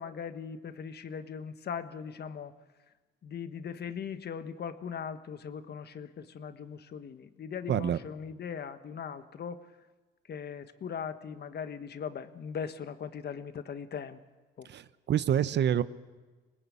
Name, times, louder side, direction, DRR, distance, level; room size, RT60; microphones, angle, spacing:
voice 1, 0.0-2.5 3.2-9.6 10.3-14.2 14.6-14.7, left 7 dB, 55° left, 10 dB, 1.4 m, -39 dB
voice 2, 7.7-8.0 14.6-15.8, right 10 dB, 60° right, 14 dB, 0.9 m, -27 dB
24.5 x 20.0 x 8.6 m, 1.3 s
cardioid pair, 90°, 20 cm